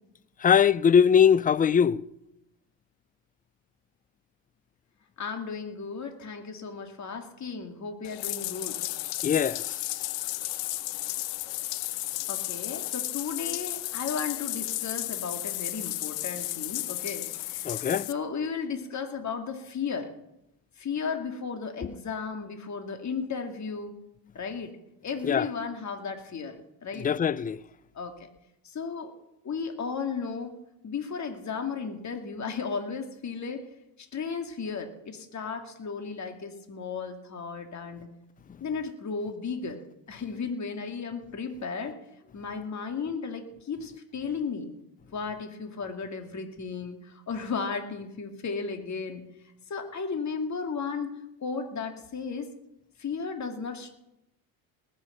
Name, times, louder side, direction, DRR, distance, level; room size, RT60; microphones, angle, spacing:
voice 1, 0.4-2.0 9.2-9.6 17.6-18.1 25.2-25.4 27.0-27.6, left 7 dB, 20° left, 0.4 m, -21 dB
voice 2, 5.2-8.8 12.3-20.1 20.8-24.0 24.3-24.7 25.0-27.1 27.9-28.2 28.6-29.1 29.4-30.5 30.8-33.7 34.0-38.1 38.6-39.8 40.1-42.0 42.3-44.7 45.1-49.2 49.7-51.1 51.4-52.5 53.0-53.9, left 5 dB, 35° left, 2.3 m, -34 dB
Bathtub (filling or washing), 8.0-18.1, left 17 dB, 65° left, 0.9 m, -33 dB
19.0 x 6.6 x 7.9 m
hypercardioid pair, 65°, 47 cm